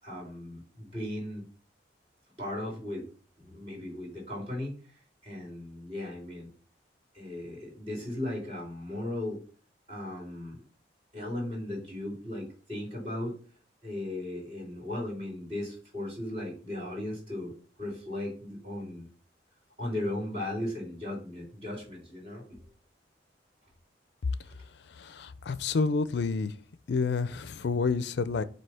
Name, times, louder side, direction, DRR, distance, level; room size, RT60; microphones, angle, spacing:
voice 1, 0.0-1.4 2.4-3.1 3.4-6.5 7.1-9.4 9.9-10.6 11.1-13.4 13.8-17.5 17.8-19.1 19.8-22.6, left 1 dB, 35° right, -3 dB, 3.2 m, -37 dB
voice 2, 25.0-26.5 26.9-28.4, left 4 dB, 65° left, 13 dB, 0.4 m, -29 dB
7.7 x 2.8 x 5.6 m, 0.41 s
head